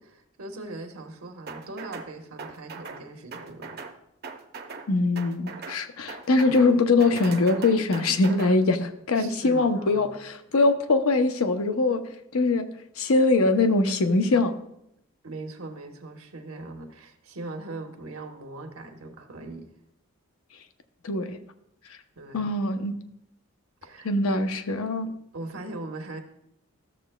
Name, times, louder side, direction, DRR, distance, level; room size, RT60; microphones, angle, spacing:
voice 1, 0.0-3.8 9.2-10.2 15.2-19.7 22.2-22.5 23.8-24.4 25.3-26.2, right 2 dB, 80° right, 4 dB, 1.1 m, -40 dB
sound 1, 1.5-2.1 2.4-3.0 3.3-3.9 4.2-4.9 5.1-5.8 6.1-6.7 7.0-8.5, right 4 dB, 45° right, 0.7 m, -39 dB
voice 2, 4.9-12.0 12.3-12.7 13.0-14.5 21.0-21.4 22.3-22.9 24.0-25.1, left 3 dB, 85° left, 8 dB, 0.7 m, -22 dB
13.0 x 7.0 x 2.2 m, 0.77 s
head